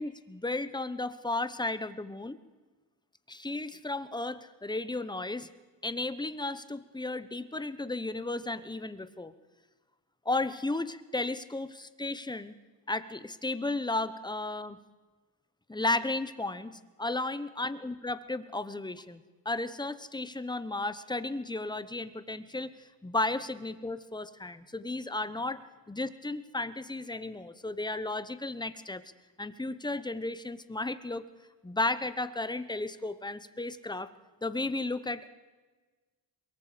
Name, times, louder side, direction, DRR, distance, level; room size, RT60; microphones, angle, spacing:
voice 1, 0.0-2.4 3.3-5.5 5.8-9.3 10.2-12.5 12.9-14.8 15.7-25.6 25.9-29.0 29.4-31.2 31.6-34.1 34.4-35.3, left 2 dB, 10° left, 13 dB, 1.0 m, -34 dB
23.0 x 22.0 x 5.1 m, 1.3 s
cardioid pair, 110°, 44 cm